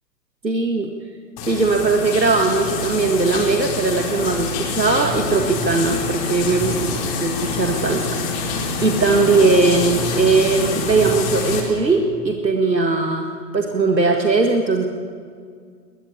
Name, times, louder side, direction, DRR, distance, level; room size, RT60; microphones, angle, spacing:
voice 1, 0.4-0.9 1.5-14.9, right 3 dB, 85° right, 4 dB, 1.9 m, -19 dB
sound 1, 1.4-11.6, left 3 dB, 30° left, 4.2 m, -26 dB
21.5 x 19.0 x 8.6 m, 2.1 s
figure-of-eight pair, 115°, 49 cm